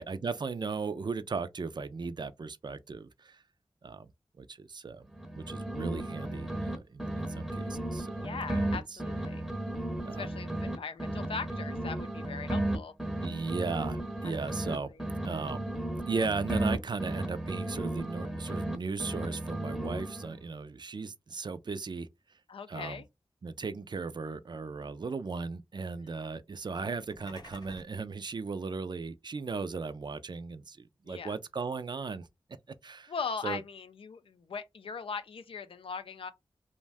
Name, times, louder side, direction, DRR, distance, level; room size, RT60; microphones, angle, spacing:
voice 1, 0.0-3.4 3.8-4.1 4.4-5.0 5.3-8.3 8.7-8.8 10.0-10.2 13.2-14.9 15.2-15.7 16.1-22.1 22.7-23.0 23.4-32.3 32.8-33.1 33.4-33.6, right 4 dB, 50° right, 0.4 m, -36 dB
sound 1, 5.1-6.7 7.0-10.7 11.0-14.7 15.0-18.7 19.0-20.4, right 1 dB, 5° right, 0.7 m, -34 dB
voice 2, 8.2-9.5 10.1-12.9 14.5-15.0 22.5-23.0 25.9-26.2 31.1-31.4 33.1-36.3, left 5 dB, 75° left, 0.4 m, -40 dB
sound 2, 27.0-28.0, left 1 dB, 45° left, 0.7 m, -51 dB
2.5 x 2.1 x 3.4 m
cardioid pair, 40°, 9 cm